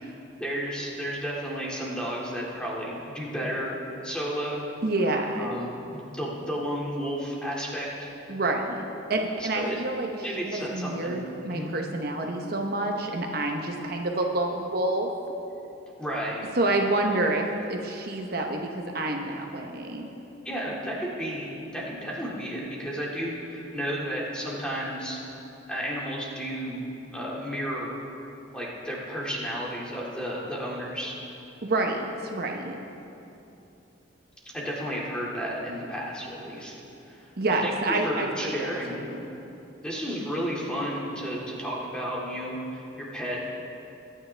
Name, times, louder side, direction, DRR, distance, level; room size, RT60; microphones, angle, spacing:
voice 1, 0.4-3.8 4.0-4.7 5.4-8.1 9.5-9.8 10.2-11.2 11.5-11.7 16.0-16.5 20.4-25.2 25.7-26.8 27.1-28.0 28.5-31.1 34.5-36.7 37.1-37.3 37.6-39.1 39.8-43.4, equal, 5° left, -5 dB, 2.2 m, -32 dB
voice 2, 4.8-5.5 8.3-10.1 10.4-15.1 16.6-20.1 31.6-32.8 37.4-38.7 39.1-39.2, right 2 dB, 50° right, 2 dB, 0.9 m, -28 dB
23.0 x 9.7 x 3.4 m, 2.9 s
head